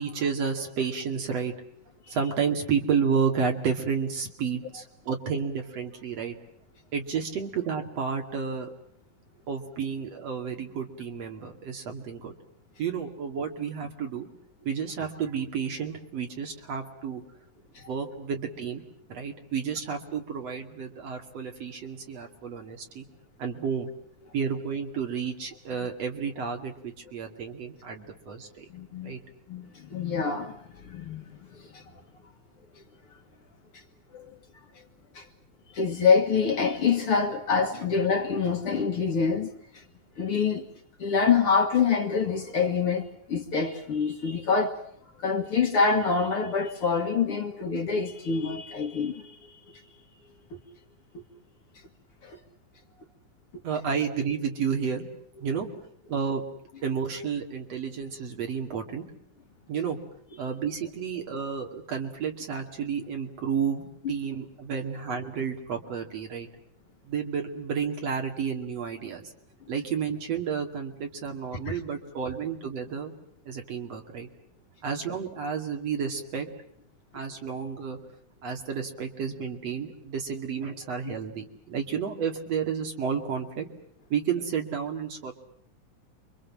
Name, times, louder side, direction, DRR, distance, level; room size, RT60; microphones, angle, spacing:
voice 1, 0.0-1.5 2.1-6.4 6.9-8.7 9.5-12.3 12.8-14.3 14.6-17.2 17.9-18.8 19.1-23.0 23.4-23.9 24.3-28.7 29.0-29.2 53.6-55.1 55.4-55.7 56.1-56.4 56.8-59.0 59.7-60.0 60.4-66.5 67.0-69.3 69.7-73.1 73.4-74.3 74.8-76.5 77.1-78.0 78.4-83.7 84.1-85.3, right 6 dB, 55° right, 3.5 m, -31 dB
voice 2, 28.7-29.2 29.5-31.9 33.7-33.8 34.1-34.4 35.1-35.3 35.7-39.8 40.2-40.7 41.0-44.8 45.2-49.8 52.2-52.4 64.0-64.1 71.7-71.8 81.0-81.2, left 5 dB, 50° left, 2.2 m, -26 dB
29.0 x 24.5 x 7.5 m
omnidirectional pair, 3.5 m